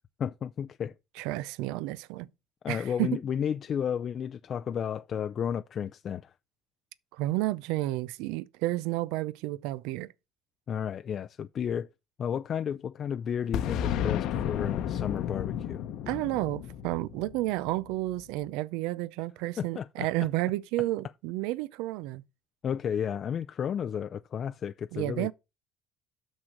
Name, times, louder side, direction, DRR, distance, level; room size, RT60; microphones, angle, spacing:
voice 1, 0.2-0.9 2.6-6.3 10.7-11.9 12.2-15.8 19.6-20.1 22.6-25.3, left 8 dB, 45° left, 0.4 m, -32 dB
voice 2, 1.2-2.3 2.7-3.1 7.1-10.1 16.1-22.2 24.9-25.3, right 17 dB, 90° right, 0.4 m, -31 dB
Boom, 13.5-18.2, left 10 dB, 70° left, 0.8 m, -32 dB
6.5 x 6.2 x 5.9 m
cardioid pair, 120°, 0 cm